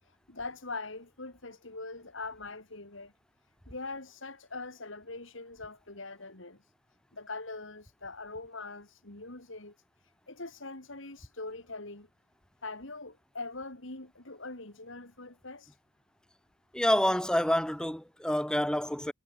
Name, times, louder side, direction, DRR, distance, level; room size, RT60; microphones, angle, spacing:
voice 1, 0.0-3.1 3.7-6.7 7.1-12.1 12.6-15.8, left 3 dB, 60° left, 3.2 m, -42 dB
voice 2, 16.7-19.1, left 1 dB, 5° left, 1.2 m, -27 dB
head